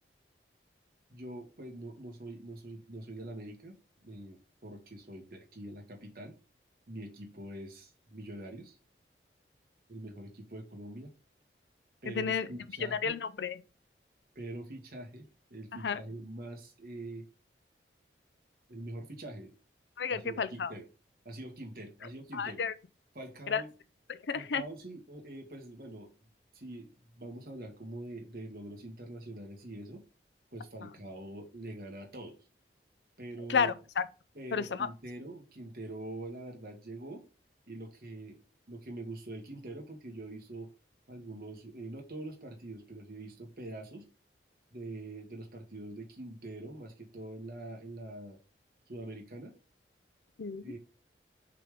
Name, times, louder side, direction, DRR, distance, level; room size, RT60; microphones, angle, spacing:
voice 1, 1.1-6.3 6.9-8.8 9.9-11.1 12.0-13.2 14.4-15.3 15.5-17.3 18.7-19.5 20.1-20.9 21.3-22.6 23.2-23.7 24.3-26.1 26.5-30.0 30.5-32.4 33.2-33.7 34.4-37.2 37.7-38.4 38.7-40.7 41.1-44.0 44.7-48.4 48.9-49.5 50.6-50.8, right 1 dB, 55° right, 1.8 m, -44 dB
voice 2, 12.1-12.5 12.8-13.6 15.8-16.0 20.0-20.7 22.3-22.7 23.5-23.6 24.1-24.6 30.8-30.9 33.5-34.0 34.5-34.9 50.4-50.8, left 6 dB, 80° left, 0.5 m, -32 dB
5.7 x 3.5 x 5.1 m
head